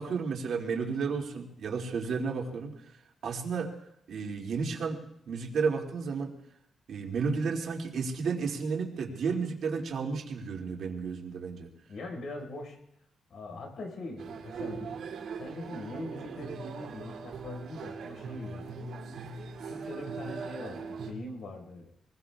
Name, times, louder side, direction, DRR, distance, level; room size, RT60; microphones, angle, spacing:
voice 1, 0.0-2.7 3.2-3.7 4.1-5.0 5.3-6.3 6.9-11.7, right 5 dB, 65° right, 0 dB, 2.4 m, -32 dB
voice 2, 11.9-12.8 13.3-14.9 15.4-18.6 19.6-21.9, left 2 dB, 65° left, 3 dB, 4.8 m, -42 dB
sound 1, 14.2-21.1, right 4 dB, 85° right, 2.7 m, -40 dB
27.0 x 20.5 x 2.4 m, 0.77 s
wide cardioid pair, 165°, 0 cm